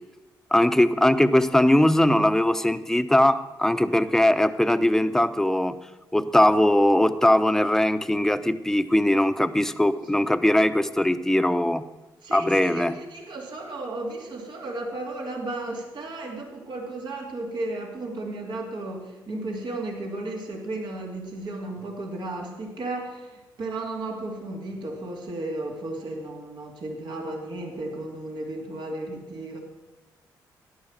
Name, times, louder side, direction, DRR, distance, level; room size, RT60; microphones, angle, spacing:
voice 1, 0.5-5.8 6.1-11.8 12.3-12.9, left 1 dB, 5° left, 11 dB, 0.9 m, -20 dB
voice 2, 12.2-29.6, right 2 dB, 65° right, 0 dB, 2.8 m, -34 dB
13.0 x 10.5 x 7.3 m, 1.1 s
supercardioid pair, 50°, 9 cm